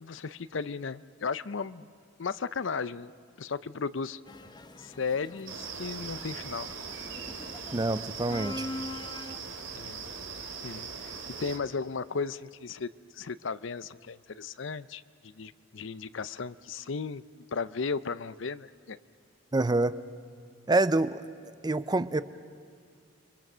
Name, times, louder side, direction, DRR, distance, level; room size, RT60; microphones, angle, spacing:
voice 1, 0.0-1.9 2.2-3.1 3.4-4.2 4.8-6.7 9.7-10.0 10.4-19.0, left 5 dB, 70° left, 16 dB, 0.6 m, -35 dB
sound 1, 4.3-9.4, left 1 dB, 25° left, 1.0 m, -43 dB
sound 2, 5.5-11.6, right 5 dB, 85° right, 2.8 m, -40 dB
voice 2, 7.7-8.7 19.5-20.0 20.7-21.2 21.6-22.2, right 2 dB, 20° right, 14 dB, 0.6 m, -26 dB
29.5 x 23.5 x 6.2 m, 2.3 s
head